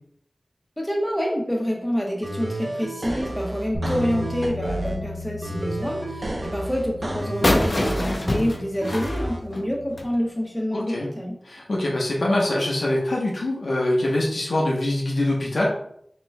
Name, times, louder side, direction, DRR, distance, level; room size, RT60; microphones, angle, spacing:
voice 1, 0.8-11.4, equal, 15° left, -1 dB, 1.1 m, -27 dB
sound 1, 2.2-5.0 5.4-8.2 8.8-9.4, right 1 dB, 60° right, 0.7 m, -31 dB
sound 2, 3.7-10.0, left 2 dB, 25° right, 1.1 m, -36 dB
sound 3, 7.4-10.1, left 1 dB, 55° left, 0.7 m, -25 dB
voice 2, 10.7-11.1 11.4-15.7, left 1 dB, 85° left, -3 dB, 0.9 m, -24 dB
5.9 x 3.1 x 2.2 m, 0.69 s
wide cardioid pair, 45°, 0 cm